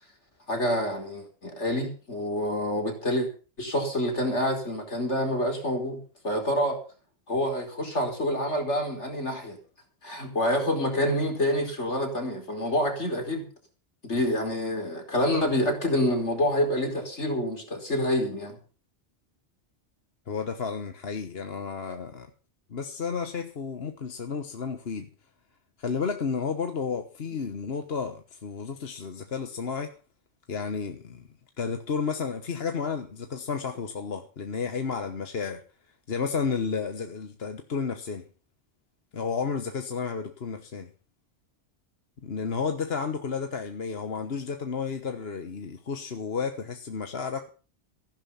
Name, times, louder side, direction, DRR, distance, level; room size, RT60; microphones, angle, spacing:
voice 1, 0.5-3.3 3.6-6.0 6.2-6.8 7.3-9.6 10.0-13.4 14.0-18.6, left 1 dB, 75° left, 5.0 m, -27 dB
voice 2, 20.3-22.3 22.7-25.1 25.8-30.0 30.5-31.3 31.6-35.6 36.1-38.3 39.1-40.9 42.2-47.5, left 5 dB, 60° left, 1.4 m, -32 dB
15.5 x 12.0 x 5.7 m
omnidirectional pair, 1.2 m